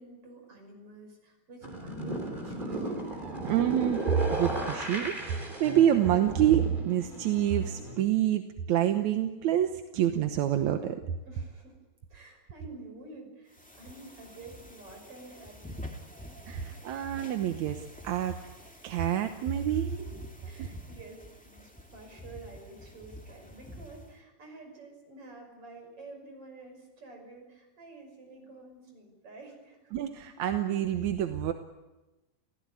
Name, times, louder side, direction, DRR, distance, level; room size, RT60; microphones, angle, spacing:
voice 1, 0.0-2.9 11.3-11.8 12.1-15.8 19.7-29.9, right 2 dB, 40° right, 3 dB, 6.6 m, -49 dB
sound 1, 1.6-8.0, right 2 dB, 15° right, 3.2 m, -35 dB
voice 2, 3.4-4.0 4.3-8.4 8.7-11.0 16.5-18.3 18.8-19.8 20.6-20.7 29.9-31.5, right 11 dB, 65° right, 7 dB, 2.1 m, -27 dB
sound 2, 13.5-24.2, equal, 5° left, 1.3 m, -48 dB
29.5 x 16.0 x 9.8 m, 1.1 s
omnidirectional pair, 4.0 m